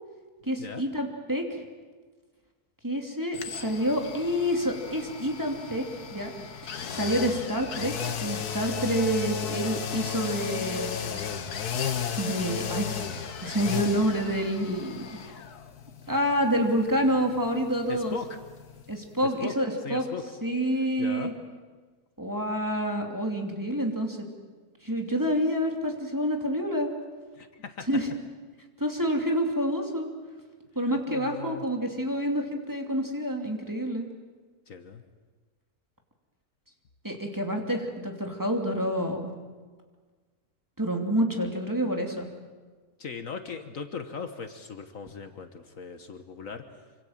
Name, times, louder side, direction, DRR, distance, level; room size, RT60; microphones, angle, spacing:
voice 1, 0.4-1.6 2.8-5.8 6.1-6.3 6.9-7.9 8.2-11.1 12.2-15.0 16.1-18.2 18.9-20.0 20.4-21.3 22.2-24.2 24.8-26.9 27.9-28.1 28.8-30.1 30.7-34.1 37.0-39.3 40.8-42.3, equal, 10° right, 2 dB, 2.9 m, -28 dB
sound 1, 3.3-19.1 19.4-19.5, left 7 dB, 90° left, 1.8 m, -35 dB
voice 2, 17.9-18.3 19.4-19.5 19.8-20.3 21.0-21.3 27.4-27.9 30.9-31.6 34.7-35.0 43.0-46.6, left 5 dB, 60° left, 7 dB, 1.6 m, -38 dB
26.0 x 25.5 x 7.4 m, 1.4 s
omnidirectional pair, 1.6 m